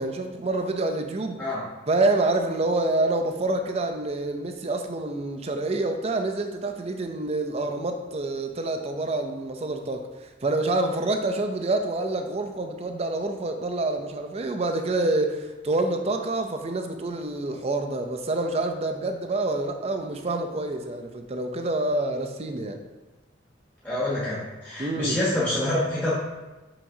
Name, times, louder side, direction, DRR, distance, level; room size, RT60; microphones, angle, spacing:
voice 1, 0.0-1.4 1.9-10.1 10.4-22.8 24.8-25.2, right 2 dB, 35° right, 5 dB, 0.5 m, -27 dB
voice 2, 23.8-26.1, left 1 dB, 10° left, -10 dB, 1.1 m, -26 dB
6.0 x 5.8 x 2.7 m, 1.2 s
head